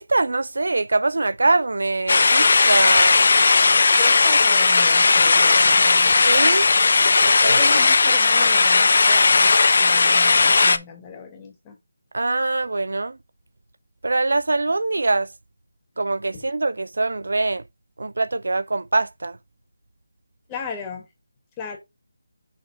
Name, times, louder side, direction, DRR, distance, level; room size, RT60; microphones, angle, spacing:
voice 1, 0.0-3.2 6.2-6.7 7.2-7.6 12.1-13.2 14.0-15.3 16.0-17.6 18.0-19.4, right 2 dB, 80° right, 0.4 m, -23 dB
sound 1, 2.1-10.8, left 4 dB, 55° left, 0.6 m, -16 dB
voice 2, 3.9-6.3 7.4-11.8 16.3-16.4 20.5-21.1 21.6-21.8, left 5 dB, 15° left, 1.4 m, -35 dB
6.2 x 3.4 x 4.6 m
figure-of-eight pair, 170°, 0 cm